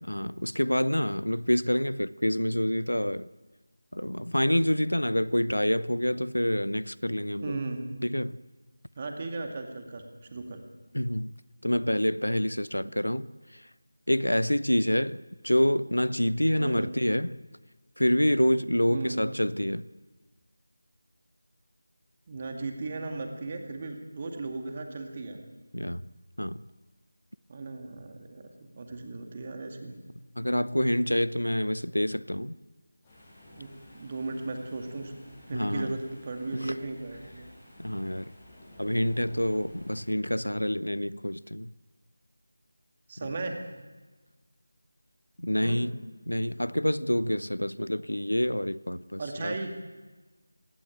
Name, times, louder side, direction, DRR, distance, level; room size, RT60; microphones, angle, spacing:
voice 1, 0.0-3.3 3.9-7.6 8.0-8.4 10.9-11.3 11.6-13.7 14.1-17.4 18.0-19.9 25.7-26.0 26.4-26.6 30.4-32.6 35.5-36.0 36.5-36.8 37.8-38.3 38.8-41.7 43.2-43.3 45.4-46.0 46.3-49.6, equal, 80° left, 0.7 m, -27 dB
voice 2, 7.4-8.0 9.0-10.0 10.3-10.6 12.7-12.9 16.6-16.9 18.9-19.3 22.3-25.4 27.5-28.5 28.8-30.0 33.5-33.7 33.9-35.1 35.5-37.5 43.1-43.6 45.6-45.8 49.2-49.7, right 3 dB, 25° right, 2.2 m, -36 dB
sound 1, 33.0-40.0, left 1 dB, 15° left, 7.7 m, -52 dB
20.5 x 17.5 x 9.1 m
figure-of-eight pair, 165°, 0 cm